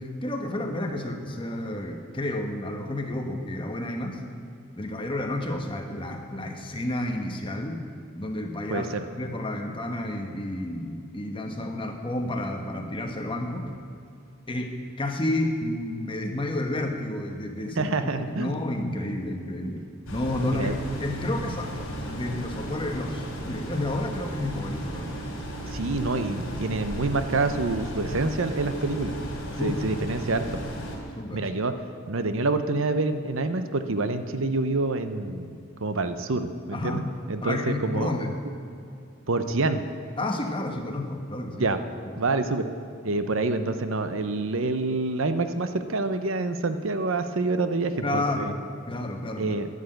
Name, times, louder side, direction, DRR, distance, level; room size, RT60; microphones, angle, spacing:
voice 1, 0.0-4.2 4.8-7.8 8.1-13.8 14.5-17.9 18.3-21.7 22.1-25.2 29.5-30.0 31.2-31.5 36.7-37.1 37.4-38.4 40.2-41.7 42.0-42.3 48.0-48.6 48.9-49.6, left 1 dB, 20° left, 3 dB, 1.1 m, -31 dB
voice 2, 8.7-9.0 17.8-18.5 20.4-20.7 25.7-29.1 29.6-30.6 31.3-31.7 32.1-35.5 35.8-38.1 39.3-39.8 41.6-41.8 42.2-42.7 43.0-48.5 49.4-49.7, right 3 dB, 60° right, 9 dB, 0.7 m, -27 dB
sound 1, 20.1-31.0, equal, 65° left, 3.5 m, -35 dB
11.5 x 11.0 x 7.8 m, 2.4 s
head